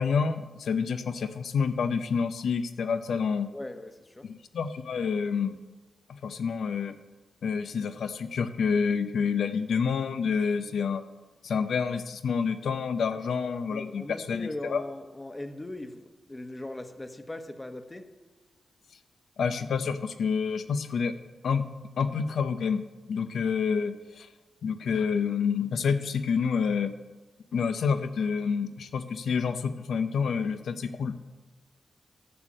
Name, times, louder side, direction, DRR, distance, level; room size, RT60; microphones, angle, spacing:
voice 1, 0.0-3.5 4.2-5.6 6.1-7.0 7.4-11.0 11.4-14.8 19.4-21.1 21.4-21.6 22.0-24.3 24.6-26.9 27.5-31.1, left 6 dB, 80° left, 0.8 m, -28 dB
voice 2, 3.5-4.3 13.1-13.2 13.7-18.1, left 1 dB, 25° left, 1.2 m, -40 dB
11.5 x 6.6 x 7.5 m
cardioid pair, 50°, 0 cm